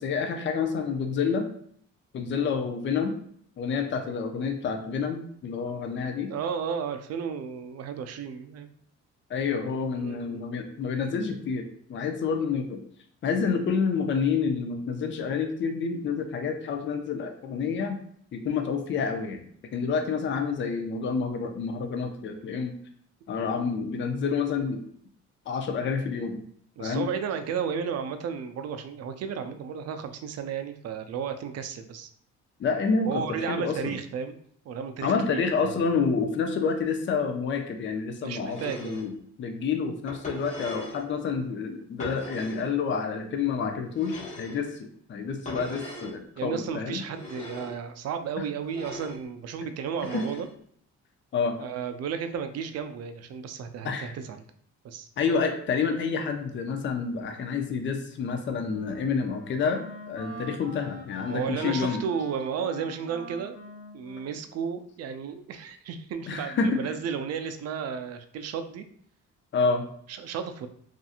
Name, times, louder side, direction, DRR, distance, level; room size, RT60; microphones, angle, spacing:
voice 1, 0.0-1.5 2.1-3.2 3.6-6.3 9.3-11.6 11.9-12.8 13.2-18.0 18.3-19.4 19.7-22.7 23.3-24.8 25.5-26.4 26.8-27.1 32.6-33.2 33.5-33.9 35.0-39.1 39.4-47.0 50.1-50.3 51.3-51.6 53.8-54.1 55.2-59.8 60.1-62.0 66.3-66.8 69.5-69.8, left 5 dB, 40° left, 5 dB, 0.4 m, -28 dB
voice 2, 6.3-8.7 10.0-10.4 26.8-32.1 33.1-34.4 34.7-35.4 38.2-39.0 46.4-50.5 51.6-54.4 54.8-55.1 61.3-63.6 63.9-68.9 70.1-70.7, right 7 dB, 55° right, 9 dB, 0.4 m, -33 dB
sound 1, 38.4-39.1 40.1-41.0 42.0-42.7 43.9-44.6 45.5-46.2 47.1-47.8 48.6-49.2 49.9-50.5, left 2 dB, 25° left, 1.0 m, -40 dB
Wind instrument woodwind instrument, 58.2-65.4, left 2 dB, 90° left, 0.9 m, -44 dB
2.7 x 2.5 x 2.4 m, 0.62 s
cardioid pair, 90°, 30 cm